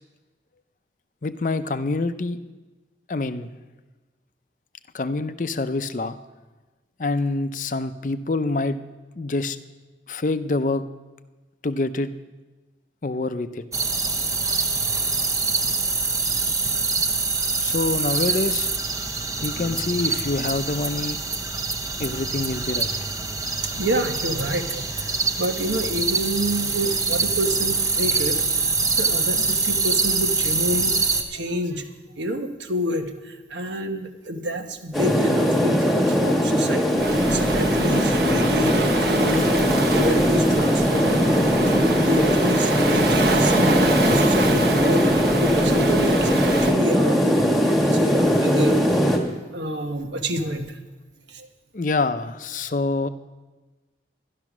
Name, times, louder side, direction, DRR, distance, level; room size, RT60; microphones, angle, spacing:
voice 1, 1.2-2.4 3.1-3.5 4.9-6.2 7.0-8.8 9.2-9.6 10.1-10.8 11.6-12.1 13.0-13.6 17.6-18.7 19.4-21.2 22.0-22.9 51.7-53.1, left 3 dB, 45° left, 11 dB, 0.5 m, -26 dB
sound 1, 13.7-31.2, right 4 dB, 20° right, 0.8 m, -24 dB
voice 2, 19.3-19.6 23.2-31.9 32.2-48.8 49.5-50.8 51.3-51.5, equal, 85° right, 6 dB, 1.2 m, -28 dB
sound 2, 34.9-49.2, equal, ahead, 1.4 m, -20 dB
Waves surf, 37.0-46.7, right 2 dB, 60° right, 1.2 m, -26 dB
12.0 x 11.5 x 6.1 m, 1.2 s
head